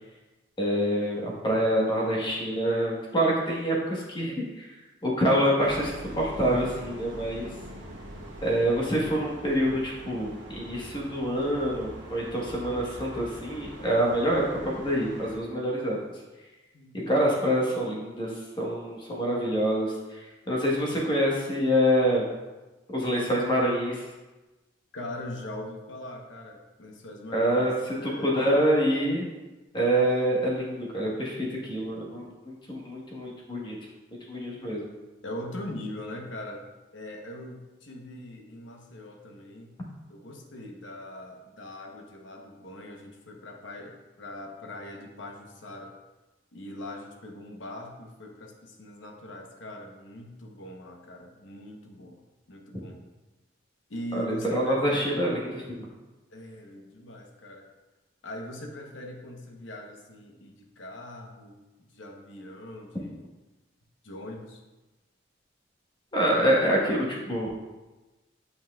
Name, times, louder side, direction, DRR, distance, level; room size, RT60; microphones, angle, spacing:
voice 1, 0.6-4.7 5.0-7.5 8.4-16.0 17.1-22.3 22.9-24.0 27.3-29.3 29.7-33.8 34.3-34.9 54.1-55.6 66.1-67.5, equal, 25° left, -3 dB, 1.2 m, -26 dB
sound 1, 5.6-15.4, right 1 dB, 65° right, 1.1 m, -43 dB
voice 2, 24.9-28.5 35.2-36.6 36.9-39.7 40.1-46.0 46.5-52.2 52.5-53.0 53.9-55.3 56.3-57.7 58.2-63.3 64.0-64.6, left 1 dB, 75° left, 2 dB, 0.9 m, -41 dB
8.1 x 5.4 x 2.3 m, 1.1 s
head